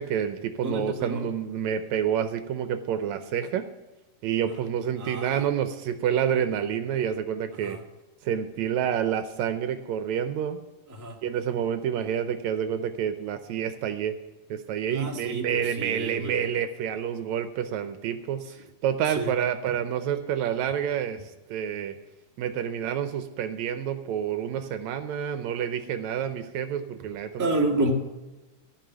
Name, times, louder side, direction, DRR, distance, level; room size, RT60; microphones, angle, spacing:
voice 1, 0.0-3.7 4.2-7.8 8.2-10.6 11.2-14.2 14.5-22.0 22.4-27.5, right 9 dB, 75° right, 9 dB, 1.9 m, -28 dB
voice 2, 0.6-1.3 4.5-4.6 5.0-5.5 7.5-7.8 10.9-11.2 14.9-16.4 18.4-18.5 19.1-19.3 27.4-27.9, right 2 dB, 10° right, -1 dB, 0.8 m, -30 dB
14.5 x 5.6 x 9.0 m, 1.1 s
omnidirectional pair, 3.5 m